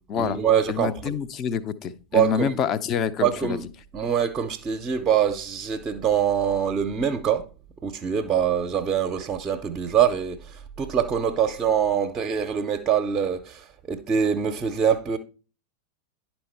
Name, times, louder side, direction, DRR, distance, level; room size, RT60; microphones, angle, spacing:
voice 1, 0.2-1.2 2.1-2.5 3.2-3.6 3.9-7.4 7.8-15.2, right 8 dB, 25° right, 0.7 m, -24 dB
voice 2, 0.7-3.6, left 7 dB, 30° left, 0.6 m, -27 dB
10.5 x 4.4 x 4.5 m
figure-of-eight pair, 90°, 0 cm